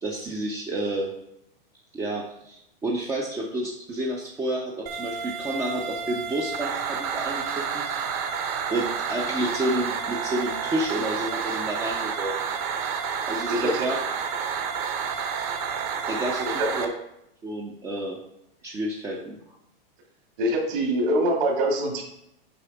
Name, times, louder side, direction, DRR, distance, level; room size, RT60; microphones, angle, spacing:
voice 1, 0.0-1.1 1.9-7.8 8.7-12.4 13.3-14.0 16.1-16.9 17.4-18.2 18.6-19.3, right 1 dB, 10° right, -1 dB, 0.4 m, -30 dB
sound 1, 4.9-16.9, right 6 dB, 35° right, 0.8 m, -30 dB
voice 2, 13.5-13.9 16.5-16.7 20.4-22.0, right 1 dB, 60° right, -1 dB, 2.1 m, -24 dB
6.9 x 4.6 x 4.7 m, 0.80 s
supercardioid pair, 155°, 30 cm